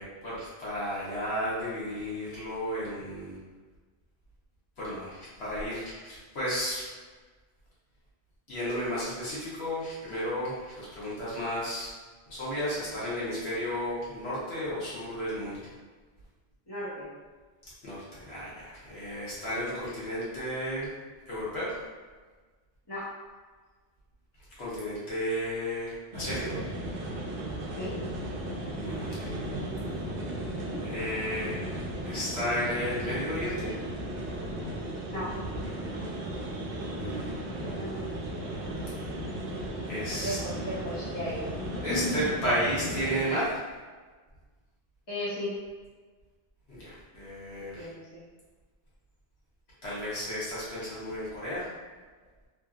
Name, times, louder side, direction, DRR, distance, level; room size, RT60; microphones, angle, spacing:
voice 1, 0.0-3.4 4.8-6.9 8.5-11.9 12.3-15.6 17.8-20.9 21.3-21.8 24.6-26.6 28.8-29.2 30.8-31.6 32.0-33.7 37.0-37.3 39.9-40.4 41.8-43.6 46.7-47.9 49.8-51.7, equal, 80° left, -9 dB, 1.3 m, -33 dB
voice 2, 16.7-17.1 22.9-23.1 27.7-28.0 35.1-35.3 37.7-38.1 40.2-42.2 45.1-45.5 47.8-48.2, equal, 25° left, -8 dB, 0.8 m, -35 dB
sound 1, 26.1-43.2, right 1 dB, 65° right, 0.7 m, -35 dB
2.9 x 2.5 x 2.4 m, 1.4 s
omnidirectional pair, 1.1 m